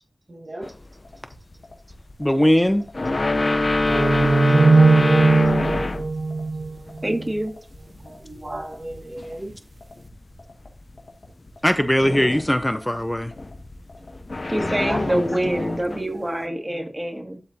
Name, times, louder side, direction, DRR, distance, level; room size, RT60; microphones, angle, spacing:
voice 1, 0.3-0.7 3.8-4.4 8.0-9.6 14.6-15.8 16.1-16.2 16.6-16.9, right 1 dB, 50° right, 1.5 m, -36 dB
sound 1, 0.6-0.9 2.1-2.2 2.9-6.2 6.5-7.4 7.9-9.4 9.8-10.1 10.6-10.8 12.0-12.7 13.1-16.0, left 2 dB, 55° left, 0.5 m, -25 dB
sound 2, 1.0-14.8, left 2 dB, 90° left, 1.6 m, -47 dB
voice 2, 2.2-2.8 11.6-13.3, equal, 15° left, 0.8 m, -19 dB
sound 3, 3.9-7.3, right 3 dB, 70° right, 0.6 m, -18 dB
voice 3, 7.0-7.5 14.5-17.4, right 1 dB, 25° right, 2.0 m, -25 dB
12.0 x 4.2 x 2.8 m
wide cardioid pair, 45°, 0 cm